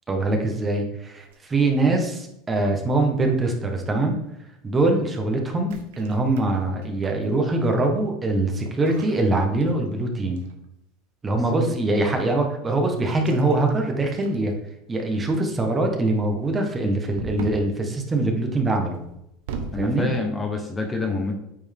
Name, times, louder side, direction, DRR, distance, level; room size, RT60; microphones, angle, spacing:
voice 1, 0.1-4.2 4.6-10.4 11.2-14.5 14.9-19.0 19.8-20.1, right 2 dB, 20° right, 3 dB, 1.3 m, -23 dB
sound 1, 1.2-2.0 3.2-3.5 5.6-7.2 8.6-10.0 10.3-10.6 13.1-13.8 14.1-14.7 17.1-17.7 18.9-19.9, right 5 dB, 80° right, 1.0 m, -38 dB
voice 2, 19.7-21.4, left 3 dB, 15° left, 3 dB, 1.0 m, -27 dB
8.8 x 4.5 x 3.6 m, 0.81 s
supercardioid pair, 120°, 0 cm